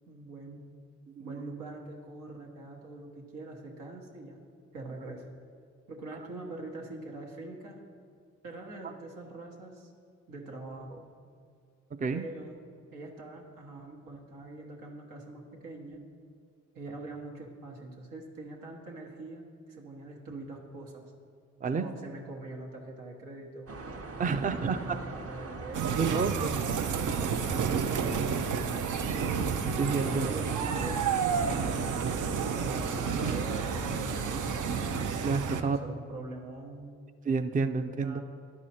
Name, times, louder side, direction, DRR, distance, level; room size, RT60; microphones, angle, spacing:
voice 1, 0.1-0.6 1.2-4.4 4.7-5.3 5.9-7.8 8.4-9.9 10.3-11.1 12.1-12.6 12.9-16.0 16.7-21.1 21.7-23.7 24.4-26.0 26.5-29.4 29.9-32.0 32.5-34.9 35.5-36.9 38.0-38.2, right 2 dB, 85° right, 0 dB, 1.2 m, -43 dB
sound 1, 23.7-35.1, right 3 dB, 45° right, 1.0 m, -40 dB
voice 2, 24.2-25.0 26.0-26.6 29.8-30.3 35.2-35.8 37.3-38.2, right 4 dB, 25° right, 9 dB, 0.5 m, -29 dB
sound 2, 25.7-35.6, right 6 dB, 70° right, 0.6 m, -31 dB
11.0 x 4.9 x 4.2 m, 2.2 s
supercardioid pair, 40°, 32 cm